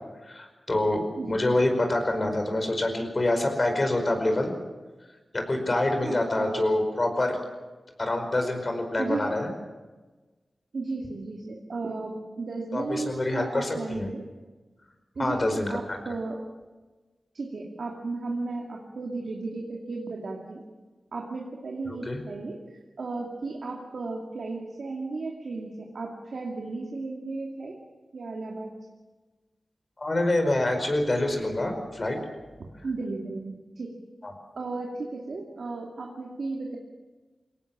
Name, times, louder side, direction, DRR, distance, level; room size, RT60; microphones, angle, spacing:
voice 1, 0.3-4.5 5.3-7.4 8.0-9.5 12.7-14.1 15.2-16.0 21.9-22.2 30.0-32.2 34.2-34.3, left 1 dB, 40° left, 5 dB, 5.0 m, -26 dB
voice 2, 6.0-6.7 9.0-9.4 10.7-14.3 15.2-16.4 17.3-20.6 21.1-27.8 28.1-28.7 32.6-34.0 34.5-36.8, right 3 dB, 75° right, 0 dB, 2.4 m, -34 dB
23.0 x 18.0 x 7.4 m, 1.3 s
cardioid pair, 60°, 0 cm